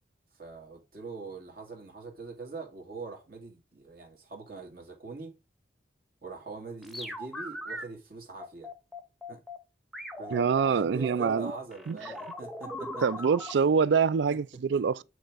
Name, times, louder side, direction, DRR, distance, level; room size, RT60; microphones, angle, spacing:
voice 1, 0.3-5.3 6.2-8.7 9.3-9.4 10.2-13.3 14.7-14.8, right 3 dB, 55° right, 2.2 m, -43 dB
sound 1, 6.8-7.8 8.4-9.6 9.9-13.5, left 1 dB, ahead, 0.8 m, -39 dB
voice 2, 10.3-11.5 11.9-12.0 13.0-15.0, right 6 dB, 70° right, 0.4 m, -25 dB
9.1 x 3.3 x 4.6 m
head